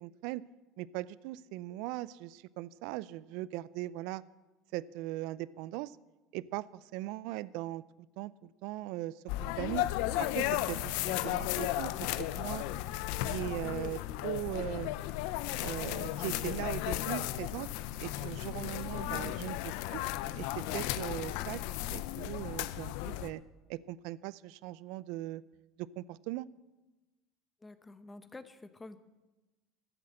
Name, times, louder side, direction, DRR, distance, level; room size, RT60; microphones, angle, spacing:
voice 1, 0.0-0.4 0.8-4.2 4.7-6.0 6.3-9.9 10.2-11.9 12.2-12.7 13.2-14.9 15.6-17.7 18.0-20.0 20.3-21.6 21.9-23.4 23.7-25.4 25.8-26.5, right 17 dB, 70° right, 20 dB, 0.4 m, -39 dB
sound 1, 9.3-23.3, left 15 dB, 75° left, 0.5 m, -35 dB
voice 2, 19.0-19.4 27.6-29.0, left 2 dB, 15° left, 11 dB, 0.9 m, -48 dB
13.5 x 7.8 x 7.5 m, 1.1 s
supercardioid pair, 110°, 0 cm